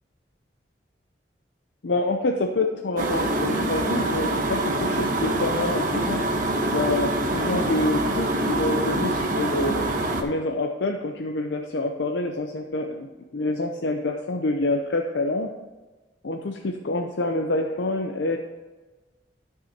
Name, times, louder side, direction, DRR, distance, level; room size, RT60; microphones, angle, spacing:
voice 1, 1.8-6.2 6.7-9.9 10.2-13.1 13.3-15.5 16.2-18.4, left 2 dB, 85° left, 3 dB, 0.6 m, -27 dB
sound 1, 3.0-10.2, right 1 dB, 50° right, 1.0 m, -25 dB
13.0 x 6.1 x 2.8 m, 1.2 s
head